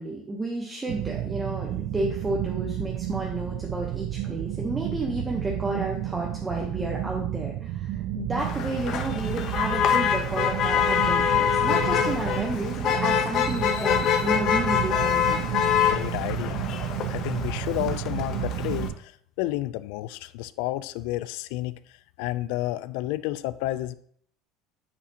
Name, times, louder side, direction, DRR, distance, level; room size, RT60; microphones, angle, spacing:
voice 1, 0.0-15.5, right 2 dB, 10° right, -2 dB, 0.8 m, -32 dB
sound 1, 0.9-18.9, right 13 dB, 60° right, 0.3 m, -31 dB
Motor vehicle (road), 8.4-18.9, left 9 dB, 45° left, 0.7 m, -25 dB
voice 2, 15.9-16.7 17.1-21.8 22.2-23.9, left 16 dB, 75° left, 15 dB, 0.3 m, -31 dB
8.3 x 4.1 x 2.8 m, 0.62 s
cardioid pair, 145°, 0 cm